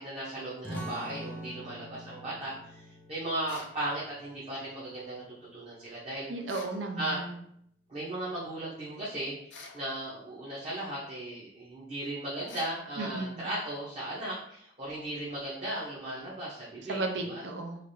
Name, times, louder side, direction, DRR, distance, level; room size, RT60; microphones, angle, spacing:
voice 1, 0.0-6.3 7.0-7.2 7.9-17.0 17.2-17.4, right 1 dB, 35° right, -8 dB, 0.8 m, -37 dB
sound 1, 0.6-5.8, right 1 dB, 10° left, 0.5 m, -45 dB
sound 2, 3.5-3.8 6.5-6.8 9.5-9.8 12.5-12.8, left 4 dB, 70° left, 0.5 m, -47 dB
voice 2, 6.3-7.4 13.0-13.5 16.9-17.8, right 2 dB, 70° right, 3 dB, 0.5 m, -34 dB
3.2 x 2.4 x 2.7 m, 0.71 s
head